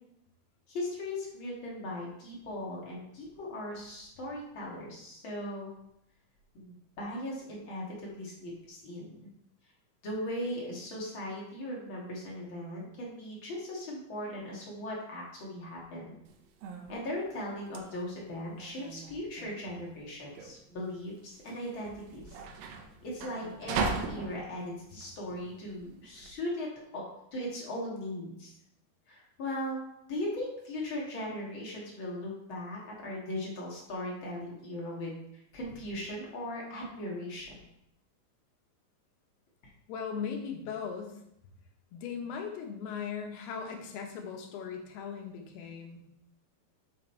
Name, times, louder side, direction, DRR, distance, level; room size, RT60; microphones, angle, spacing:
voice 1, 0.7-5.7 6.5-9.2 10.0-16.2 16.9-22.2 23.0-28.5 29.1-29.8 30.1-35.1 35.5-37.5, left 1 dB, 45° left, -3 dB, 1.7 m, -38 dB
sound 1, 16.3-26.3, right 4 dB, 80° right, 2.2 m, -39 dB
voice 2, 39.9-41.2 41.9-46.0, left 6 dB, 80° left, 3 dB, 2.9 m, -38 dB
6.2 x 5.7 x 4.4 m, 0.78 s
omnidirectional pair, 4.6 m